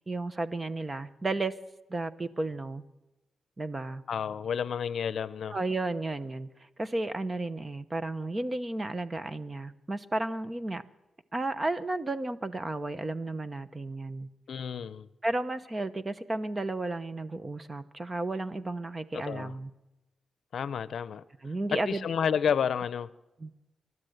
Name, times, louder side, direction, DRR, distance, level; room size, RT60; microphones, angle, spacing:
voice 1, 0.0-1.5 1.9-2.8 3.6-4.0 5.5-10.8 11.3-14.3 15.2-19.7 21.4-22.1 23.4-23.5, right 2 dB, 25° right, 0.9 m, -33 dB
voice 2, 4.1-5.6 14.5-15.1 19.1-19.5 20.5-21.2 21.7-23.1, left 7 dB, 65° left, 0.7 m, -30 dB
28.5 x 12.5 x 8.0 m
cardioid pair, 110°, 0 cm